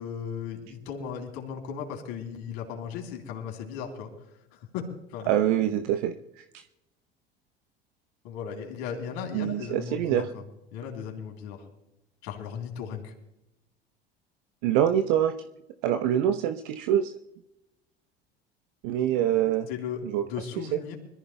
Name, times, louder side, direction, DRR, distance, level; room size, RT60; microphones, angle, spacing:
voice 1, 0.0-4.1 4.5-5.3 8.2-10.4 10.7-11.7 12.2-13.1 19.7-21.0, left 7 dB, 55° left, 2 dB, 3.7 m, -36 dB
voice 2, 5.3-6.4 9.3-10.3 14.6-15.3 15.8-17.1 18.8-19.7 20.1-20.2, right 10 dB, 55° right, 7 dB, 1.0 m, -25 dB
25.5 x 14.5 x 2.3 m, 0.88 s
figure-of-eight pair, 70°, 30 cm